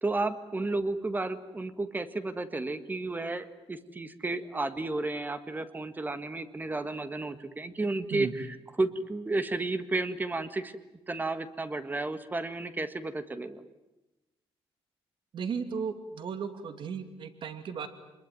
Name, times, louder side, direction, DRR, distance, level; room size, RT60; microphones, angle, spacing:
voice 1, 0.0-10.7 11.1-13.6, right 2 dB, 20° right, 11 dB, 1.7 m, -32 dB
voice 2, 15.3-17.9, right 6 dB, 55° right, 9 dB, 2.6 m, -35 dB
26.5 x 21.5 x 9.4 m, 0.98 s
cardioid pair, 135°, 10 cm